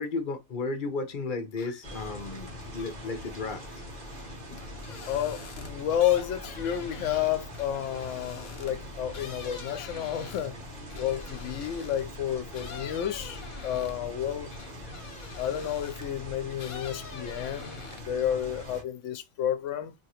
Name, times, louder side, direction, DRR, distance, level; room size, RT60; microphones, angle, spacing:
voice 1, 0.0-3.8, left 3 dB, 45° left, 0.8 m, -34 dB
sound 1, 1.5-2.0 2.4-12.1 12.5-16.2 16.5-18.2 18.6-19.2, left 7 dB, 90° left, 0.4 m, -47 dB
sound 2, 1.8-18.8, equal, 35° right, 1.1 m, -42 dB
voice 2, 5.1-10.5 10.9-14.5 15.4-19.9, left 10 dB, 70° left, 0.9 m, -31 dB
2.9 x 2.7 x 2.9 m
omnidirectional pair, 1.4 m